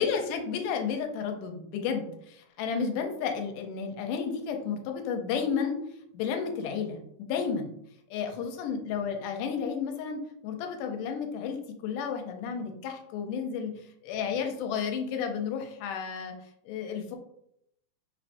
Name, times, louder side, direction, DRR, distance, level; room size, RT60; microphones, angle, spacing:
voice 1, 0.0-5.8 6.1-7.7 8.1-13.7 14.0-16.3 16.7-17.2, left 6 dB, 85° left, 4 dB, 2.2 m, -32 dB
4.6 x 4.3 x 2.6 m, 0.75 s
omnidirectional pair, 3.6 m